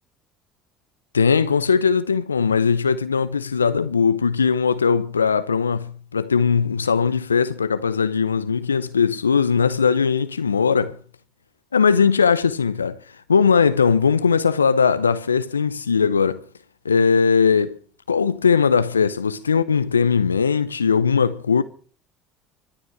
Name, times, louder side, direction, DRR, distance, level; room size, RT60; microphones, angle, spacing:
voice 1, 1.1-11.0 11.7-13.0 13.3-16.4 16.8-17.8 18.1-21.6, left 6 dB, 90° left, 0.6 m, -19 dB
25.5 x 8.8 x 4.7 m
hypercardioid pair, 65°, 0 cm